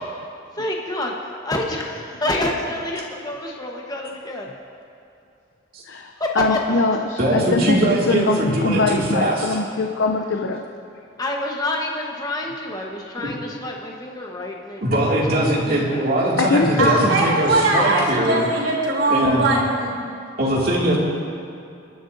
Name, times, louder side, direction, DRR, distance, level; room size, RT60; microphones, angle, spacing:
voice 1, 0.6-4.6 6.2-6.8 10.3-10.4 11.2-14.8 15.1-16.0, left 1 dB, 20° left, -1 dB, 1.2 m, -28 dB
voice 2, 6.4-10.6 16.4-17.3, left 3 dB, 80° left, 3 dB, 0.6 m, -22 dB
voice 3, 7.2-9.6 13.2-13.3 14.8-18.4 19.1-19.5 20.4-21.0, right 1 dB, 50° right, -4 dB, 2.4 m, -21 dB
voice 4, 16.8-19.9, right 2 dB, 80° right, -4 dB, 3.2 m, -20 dB
22.5 x 11.0 x 2.7 m, 2.6 s
head